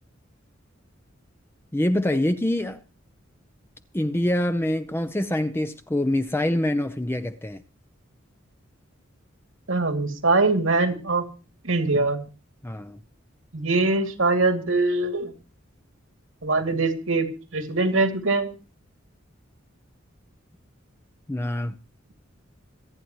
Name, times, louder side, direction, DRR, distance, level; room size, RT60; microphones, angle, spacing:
voice 1, 1.7-2.8 3.9-7.6 12.6-13.0 21.3-21.8, left 1 dB, 10° left, 0.6 m, -25 dB
voice 2, 9.7-11.2 11.6-12.2 13.5-15.3 16.4-18.5, right 3 dB, 80° right, 2.6 m, -22 dB
26.5 x 9.4 x 3.1 m
head